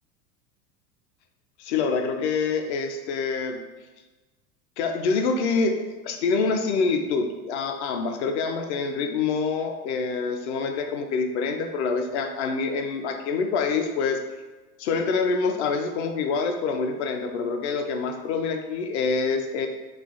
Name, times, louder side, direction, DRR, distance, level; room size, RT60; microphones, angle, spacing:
voice 1, 1.6-3.6 4.8-5.8 6.0-14.2 14.8-19.7, left 4 dB, 45° left, 5 dB, 0.5 m, -26 dB
3.3 x 2.4 x 3.8 m, 1.2 s
figure-of-eight pair, 90°, 48 cm